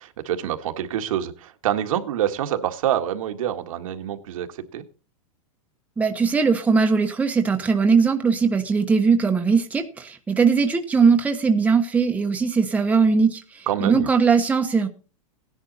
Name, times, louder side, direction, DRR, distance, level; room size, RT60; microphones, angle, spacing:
voice 1, 0.0-4.8 13.7-14.1, right 11 dB, 70° right, 6 dB, 1.8 m, -26 dB
voice 2, 6.0-14.9, right 5 dB, 10° right, 5 dB, 1.1 m, -20 dB
17.0 x 10.5 x 4.1 m, 0.34 s
supercardioid pair, 150°, 18 cm